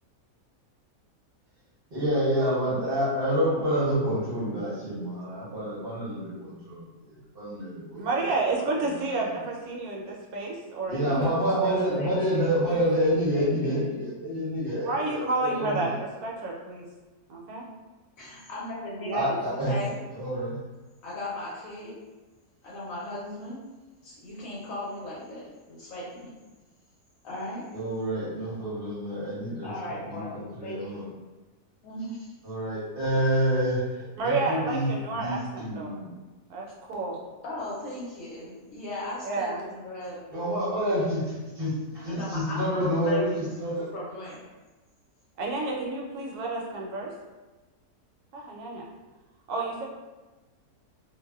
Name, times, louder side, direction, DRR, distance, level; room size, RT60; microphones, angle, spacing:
voice 1, 1.9-6.9 7.3-8.0 10.9-15.9 19.1-19.7 20.1-20.6 27.7-29.7 30.1-31.0 32.4-33.8 34.2-34.9 35.1-36.1 40.3-43.3 43.6-43.8, equal, 50° right, -9 dB, 0.8 m, -28 dB
voice 2, 8.0-11.8 12.1-12.2 12.7-12.9 14.8-16.9 17.3-17.6 19.0-19.4 34.2-35.9 36.5-37.2 39.2-39.6 45.4-47.1 48.3-48.9 49.5-49.8, right 3 dB, 80° right, -2 dB, 1.1 m, -30 dB
voice 3, 11.1-11.6 12.0-12.6 13.3-13.8 18.2-20.4 21.0-22.0 22.6-23.6 24.0-26.3 27.2-27.6 29.6-31.0 31.8-32.3 37.4-40.4 40.8-41.2 42.0-43.5 43.9-44.4, left 1 dB, 70° left, -6 dB, 0.9 m, -37 dB
2.6 x 2.1 x 2.2 m, 1.2 s
omnidirectional pair, 1.6 m